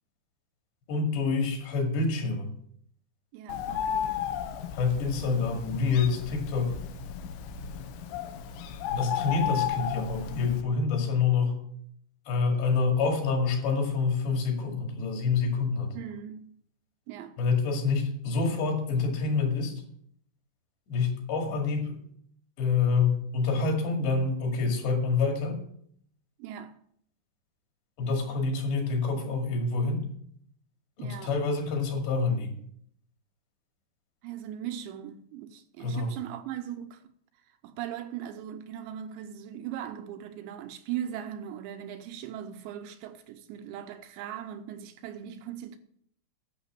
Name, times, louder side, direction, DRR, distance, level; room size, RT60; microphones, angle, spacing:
voice 1, 0.9-2.5 4.7-6.7 8.9-11.6 12.3-16.0 17.4-19.8 20.9-22.0 22.6-25.6 28.0-30.1 31.0-32.6 35.8-36.1, left 4 dB, 70° left, 4.3 m, -27 dB
voice 2, 3.3-4.3 15.9-16.6 17.1-17.4 26.4-26.8 31.0-31.4 34.2-37.0 37.6-45.8, right 10 dB, 85° right, 2.9 m, -39 dB
Bird, 3.5-10.6, left 9 dB, 85° left, 3.3 m, -34 dB
12.0 x 6.4 x 7.5 m
omnidirectional pair, 5.4 m